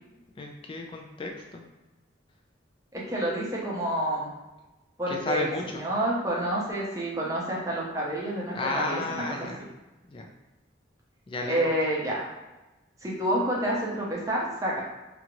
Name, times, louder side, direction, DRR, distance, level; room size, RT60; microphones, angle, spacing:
voice 1, 0.4-1.6 5.1-5.8 8.5-9.6 10.1-10.3 11.3-11.7, left 2 dB, 25° left, 2 dB, 0.3 m, -33 dB
voice 2, 2.9-4.3 5.0-9.5 11.5-12.3 13.0-14.8, right 1 dB, 15° right, -5 dB, 0.6 m, -29 dB
2.7 x 2.4 x 2.9 m, 1.1 s
head